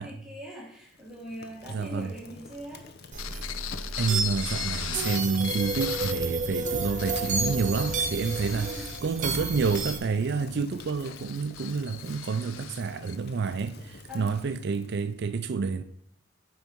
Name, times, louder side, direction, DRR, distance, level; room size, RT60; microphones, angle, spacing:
voice 1, 0.0-2.9 8.4-9.0 14.1-14.4, equal, 5° right, 1.5 m, -42 dB
Fire, 0.8-15.2, left 4 dB, 55° left, 0.8 m, -48 dB
voice 2, 1.7-2.1 4.0-8.7 9.0-15.8, right 5 dB, 60° right, 0.4 m, -29 dB
sound 1, 3.1-10.0, right 3 dB, 40° right, 1.1 m, -31 dB
sound 2, 3.2-6.3 6.8-13.2, left 13 dB, 80° left, 0.4 m, -39 dB
9.0 x 5.3 x 4.5 m
head